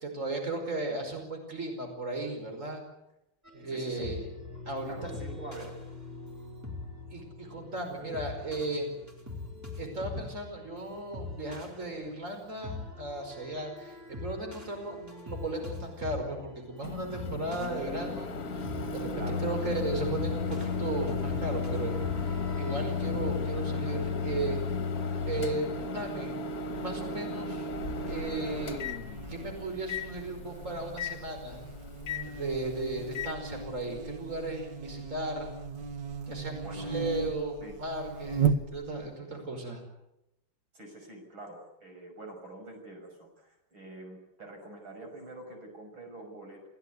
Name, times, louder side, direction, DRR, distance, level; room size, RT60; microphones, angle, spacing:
voice 1, 0.0-2.8 3.5-4.3 4.7-4.9 7.1-8.9 9.8-18.6 18.9-24.6 25.3-26.3 26.7-27.7 28.1-28.8 29.3-31.6 32.2-35.5 36.3-39.8, right 2 dB, 40° right, 4 dB, 5.6 m, -36 dB
sound 1, 3.4-23.3, left 3 dB, 10° right, 4.6 m, -43 dB
voice 2, 3.7-4.1 4.9-5.8 19.1-19.4 36.6-36.9 37.6-37.8 40.7-46.7, right 2 dB, 80° right, 3 dB, 6.8 m, -46 dB
Microwave oven, 16.8-33.3, left 4 dB, 50° left, 1.8 m, -34 dB
Buzz, 27.7-39.1, right 5 dB, 65° right, 2.2 m, -36 dB
28.5 x 17.0 x 9.5 m, 0.90 s
omnidirectional pair, 2.2 m